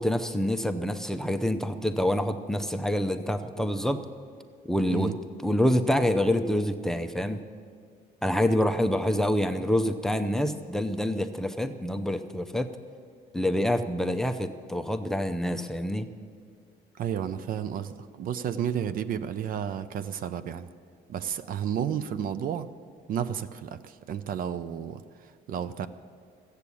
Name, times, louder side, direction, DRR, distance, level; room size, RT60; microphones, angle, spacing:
voice 1, 0.0-4.0 4.7-5.1 5.4-7.4 8.2-12.7 13.3-16.1, left 1 dB, 5° left, 9 dB, 0.6 m, -26 dB
voice 2, 4.9-5.2 17.0-20.7 21.1-22.7 23.1-25.9, right 9 dB, 55° right, 13 dB, 0.5 m, -32 dB
14.0 x 8.1 x 8.5 m, 2.1 s
cardioid pair, 110°, 17 cm